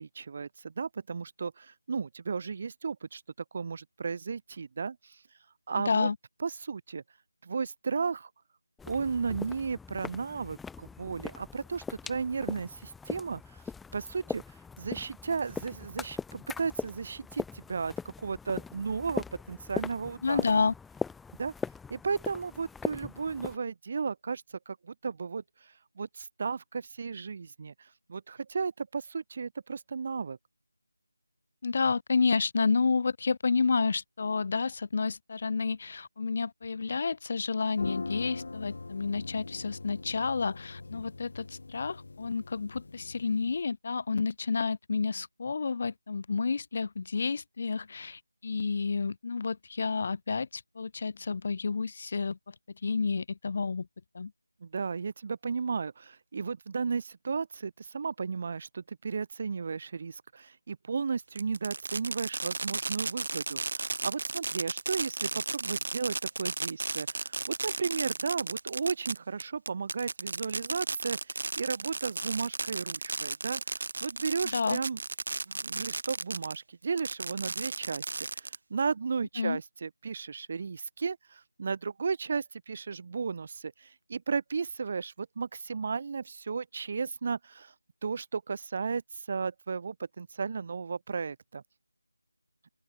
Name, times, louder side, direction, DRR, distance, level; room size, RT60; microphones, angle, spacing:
voice 1, 0.0-3.2 3.5-5.2 5.7-6.1 6.4-7.0 7.4-8.3 8.9-13.6 13.9-14.4 14.8-20.6 21.4-21.5 21.9-30.4 54.6-75.0 75.5-87.7 88.0-91.6, right 5 dB, 30° right, 2.7 m, -34 dB
sound 1, 8.8-23.6, left 5 dB, ahead, 1.4 m, -40 dB
voice 2, 20.2-20.7 31.6-52.4 52.8-53.9 54.1-54.3 74.5-74.8 79.4-79.6, left 4 dB, 30° left, 0.7 m, -30 dB
sound 2, 37.7-43.6, left 3 dB, 50° left, 2.0 m, -42 dB
Fireworks, 61.4-76.6 77.0-78.8, right 3 dB, 50° right, 0.9 m, -34 dB
open air
figure-of-eight pair, 175°, 0 cm